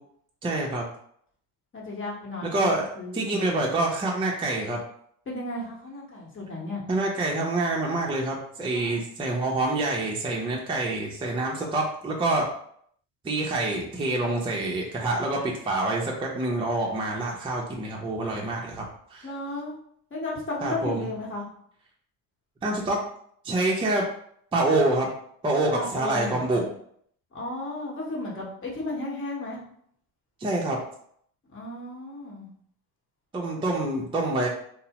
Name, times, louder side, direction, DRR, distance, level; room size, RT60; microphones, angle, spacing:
voice 1, 0.4-0.9 2.4-2.9 3.1-4.8 6.9-12.5 13.2-19.3 20.6-21.1 22.6-23.0 23.4-24.1 24.5-25.1 25.4-26.7 30.4-30.8 33.3-34.5, right 2 dB, 15° right, -2 dB, 0.5 m, -26 dB
voice 2, 1.7-3.7 5.3-6.8 8.7-9.0 19.2-19.7 20.1-21.5 25.7-26.7 27.3-29.6 31.5-32.5, left 2 dB, 30° left, -4 dB, 1.1 m, -34 dB
2.7 x 2.0 x 2.8 m, 0.65 s
supercardioid pair, 90°, 39 cm